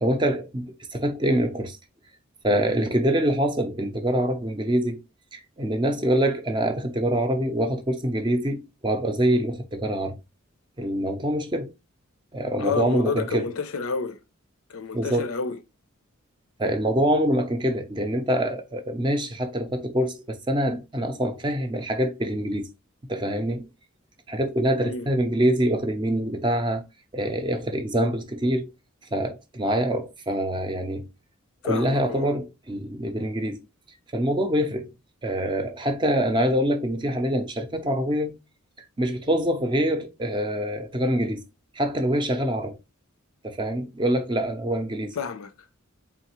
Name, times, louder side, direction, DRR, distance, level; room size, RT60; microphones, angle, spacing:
voice 1, 0.0-1.8 2.4-5.0 5.3-10.2 10.8-11.7 12.3-13.5 14.9-15.3 16.6-22.7 23.1-23.7 24.3-26.8 27.1-28.7 29.1-31.0 31.6-33.6 34.1-34.9 35.2-38.4 39.0-41.4 41.7-42.8 43.4-45.2, right 1 dB, 20° right, 0.5 m, -25 dB
voice 2, 12.5-14.2 14.7-15.6 24.8-25.1 31.6-32.3 45.1-45.5, left 4 dB, 85° left, 0.6 m, -29 dB
4.0 x 3.7 x 3.0 m
head